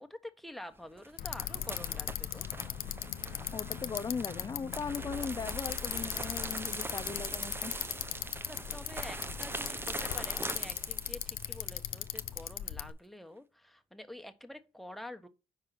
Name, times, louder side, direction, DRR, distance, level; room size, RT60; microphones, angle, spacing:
voice 1, 0.0-2.5 8.4-15.3, left 1 dB, ahead, 1.2 m, -48 dB
sound 1, 0.8-12.6, right 2 dB, 15° right, 0.7 m, -42 dB
Bicycle, 1.2-12.9, left 12 dB, 80° left, 0.5 m, -39 dB
voice 2, 3.5-7.7, left 5 dB, 25° left, 0.4 m, -38 dB
5.3 x 4.8 x 5.8 m
cardioid pair, 65°, 14 cm